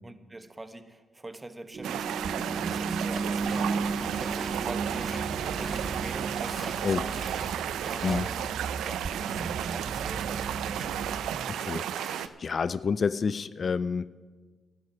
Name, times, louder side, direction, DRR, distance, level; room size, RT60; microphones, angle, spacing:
voice 1, 0.0-8.6 8.8-11.2, right 2 dB, 20° right, 10 dB, 1.3 m, -44 dB
sound 1, 1.7-11.3, right 4 dB, 55° right, 0.9 m, -35 dB
sound 2, 1.8-12.3, right 10 dB, 80° right, 0.5 m, -33 dB
Walk footsteps, 3.1-8.4, equal, 5° left, 5.1 m, -44 dB
voice 2, 11.6-14.1, left 5 dB, 55° left, 17 dB, 0.4 m, -29 dB
11.0 x 7.7 x 9.6 m, 1.4 s
supercardioid pair, 50°, 0 cm